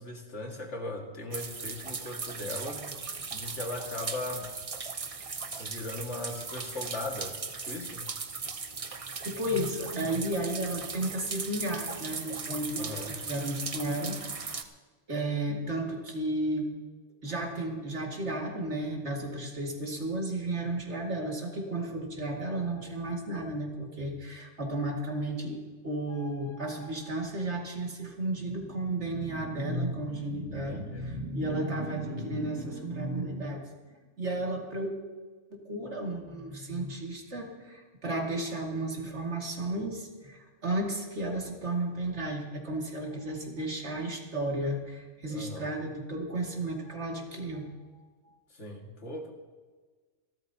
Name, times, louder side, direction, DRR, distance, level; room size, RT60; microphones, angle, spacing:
voice 1, 0.0-2.8 3.3-4.5 5.6-7.4 7.7-8.1 12.8-13.2 30.7-31.1 45.3-45.7 48.5-49.3, left 2 dB, 75° left, 1 dB, 2.3 m, -38 dB
sound 1, 1.3-14.6, right 4 dB, 35° right, 0.8 m, -38 dB
voice 2, 9.2-14.6 15.1-16.7 17.2-33.6 34.2-34.9 35.5-47.7, right 1 dB, 70° right, 0 dB, 2.6 m, -33 dB
27.5 x 13.0 x 2.8 m, 1.4 s
omnidirectional pair, 1.2 m